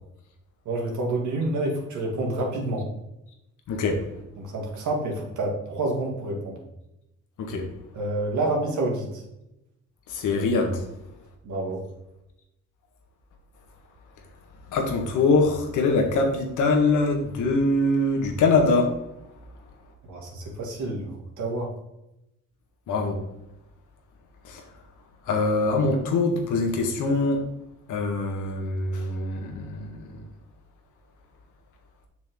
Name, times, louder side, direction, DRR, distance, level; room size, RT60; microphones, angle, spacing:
voice 1, 0.6-2.8 4.4-6.6 7.9-9.2 11.4-11.8 20.1-21.7, right 2 dB, 75° right, 0 dB, 2.6 m, -28 dB
voice 2, 3.7-4.0 7.4-7.6 10.1-10.8 14.7-18.9 22.9-23.2 24.5-24.6 25.3-27.4 27.9-30.0, left 3 dB, 80° left, 2 dB, 1.7 m, -23 dB
6.9 x 6.5 x 3.8 m, 0.88 s
cardioid pair, 90°, 30 cm